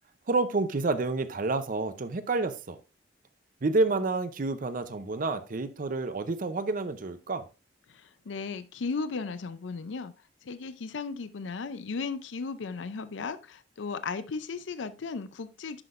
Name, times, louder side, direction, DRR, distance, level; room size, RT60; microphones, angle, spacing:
voice 1, 0.3-2.8 3.6-7.4, right 3 dB, 45° right, 0.6 m, -29 dB
voice 2, 7.9-10.1 10.4-15.8, left 4 dB, 85° left, 0.5 m, -36 dB
10.5 x 5.9 x 2.5 m
head